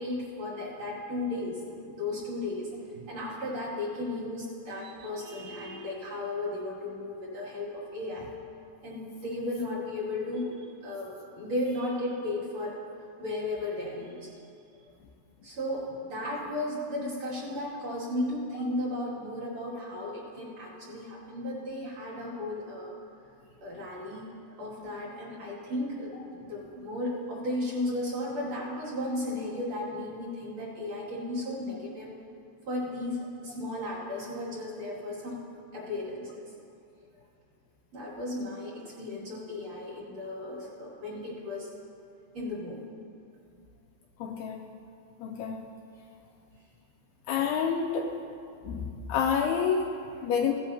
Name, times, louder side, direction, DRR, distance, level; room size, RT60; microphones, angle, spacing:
voice 1, 0.0-8.3 8.8-12.7 13.2-14.3 15.4-23.0 23.6-32.1 32.7-35.4 35.7-36.5 37.9-41.7 42.3-42.8, left 1 dB, 40° right, -8 dB, 3.4 m, -35 dB
voice 2, 44.2-44.6 45.2-45.6 47.3-48.1 48.7-50.5, left 6 dB, 80° left, 1 dB, 2.3 m, -29 dB
17.5 x 10.0 x 2.9 m, 2.5 s
omnidirectional pair, 4.9 m